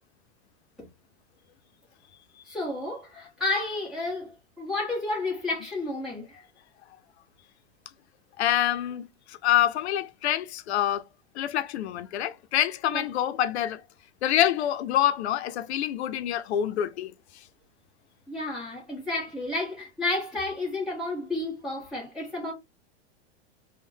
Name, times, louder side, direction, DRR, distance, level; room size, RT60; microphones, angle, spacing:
voice 1, 2.5-4.3 4.6-6.4 12.9-13.0 18.3-22.5, left 2 dB, ahead, 0.8 m, -31 dB
voice 2, 8.4-11.0 11.3-13.8 14.2-17.4, left 11 dB, 75° left, 0.5 m, -26 dB
3.5 x 2.1 x 2.6 m
supercardioid pair, 180°, 33 cm